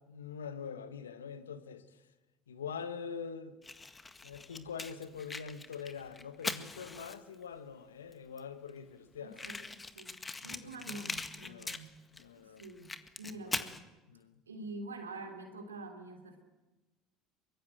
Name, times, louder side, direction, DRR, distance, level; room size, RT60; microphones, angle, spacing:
voice 1, 0.1-2.1 2.5-3.6 4.2-9.7 10.4-11.0 11.4-11.8 12.1-12.7 13.3-13.7 14.1-14.4, left 6 dB, 85° left, 1.3 m, -44 dB
Fire, 3.6-7.4 8.1-8.2 8.4-8.5 8.7-8.8 9.3-12.2 12.6-13.8, left 3 dB, 20° left, 1.8 m, -41 dB
voice 2, 9.2-10.2 10.4-12.0 12.6-12.9 13.2-13.8 14.5-16.4, right 2 dB, 90° right, 3.2 m, -46 dB
23.5 x 23.0 x 7.8 m
hypercardioid pair, 70°, 0 cm